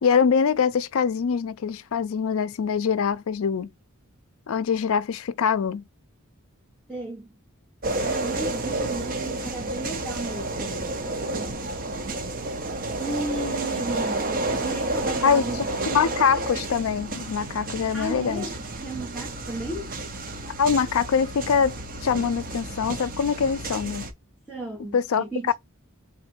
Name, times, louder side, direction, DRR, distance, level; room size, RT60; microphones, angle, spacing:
voice 1, 0.0-3.7 4.5-5.8 15.2-15.4 15.8-18.5 20.6-21.7 22.0-24.0 24.9-25.5, left 6 dB, 70° left, 0.4 m, -23 dB
voice 2, 6.9-7.3 8.0-11.0 13.0-14.3 14.6-15.6 17.9-19.9 24.5-25.5, right 2 dB, 5° right, 1.0 m, -34 dB
sound 1, 7.8-24.1, right 2 dB, 40° right, 0.7 m, -31 dB
3.6 x 2.6 x 4.3 m
head